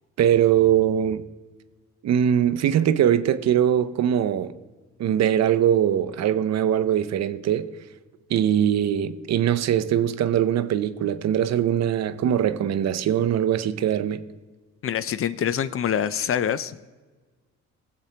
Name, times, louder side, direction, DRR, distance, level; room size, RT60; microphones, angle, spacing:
voice 1, 0.2-1.2 2.0-4.5 5.0-7.7 8.3-14.2, right 10 dB, 60° right, 0.6 m, -21 dB
voice 2, 14.8-16.8, left 9 dB, 45° left, 0.5 m, -25 dB
16.5 x 7.7 x 2.9 m
cardioid pair, 90°, 30 cm